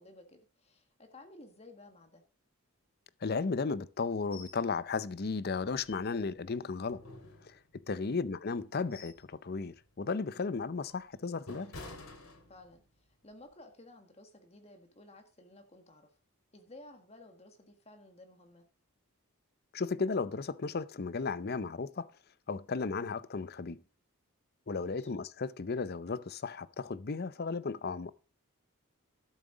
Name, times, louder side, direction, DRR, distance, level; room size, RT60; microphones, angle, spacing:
voice 1, 0.0-2.2 12.5-16.1 16.5-18.6 24.8-25.1, left 2 dB, 30° left, 1.6 m, -55 dB
voice 2, 3.2-7.0 7.4-7.6 7.9-11.7 19.7-22.1 22.5-23.8 24.7-28.1, left 4 dB, 45° left, 0.6 m, -35 dB
sound 1, 4.3-4.6 5.0-5.1 5.6-6.4 6.9-7.9 8.5-9.3 9.7-9.9 10.5-12.9 13.3-13.5, left 2 dB, 85° left, 3.4 m, -50 dB
12.5 x 7.3 x 5.0 m
head